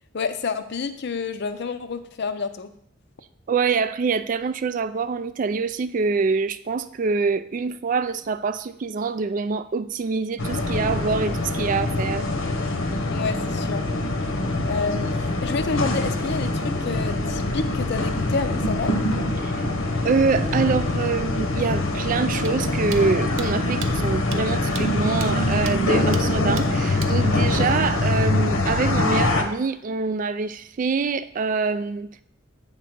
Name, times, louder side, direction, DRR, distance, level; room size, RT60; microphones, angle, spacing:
voice 1, 0.1-2.7 13.1-13.8 14.7-18.9, left 4 dB, 55° left, 0.5 m, -29 dB
voice 2, 3.5-12.3 19.4-19.5 20.0-32.2, right 4 dB, 40° right, 0.3 m, -25 dB
sound 1, 10.4-29.4, left 2 dB, 75° left, 1.0 m, -24 dB
sound 2, 22.4-22.5 22.9-23.0 23.4-23.5 23.8-23.9 24.3-24.4 24.7-24.8 25.2-25.3 25.7-25.8 26.1-26.2 26.6-26.7 27.0-27.1, right 8 dB, 75° right, 0.6 m, -35 dB
8.0 x 3.7 x 6.0 m
head